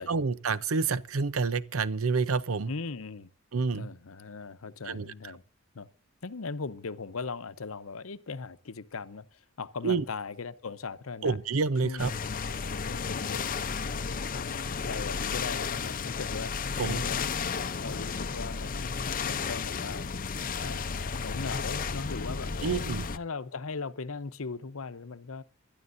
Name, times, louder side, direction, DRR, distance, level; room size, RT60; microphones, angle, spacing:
voice 1, 0.0-2.7 3.5-3.9 4.9-5.1 9.8-10.0 11.2-12.1 16.8-17.0 22.6-23.0, right 4 dB, 80° right, 0.7 m, -28 dB
voice 2, 2.7-3.3 3.5-5.4 5.7-5.9 6.2-11.4 11.8-12.0 12.9-17.3 17.8-19.0 19.2-20.1 20.6-25.4, left 4 dB, 80° left, 0.8 m, -39 dB
sound 1, 12.0-23.2, left 5 dB, 40° left, 0.6 m, -33 dB
27.0 x 12.5 x 2.6 m
head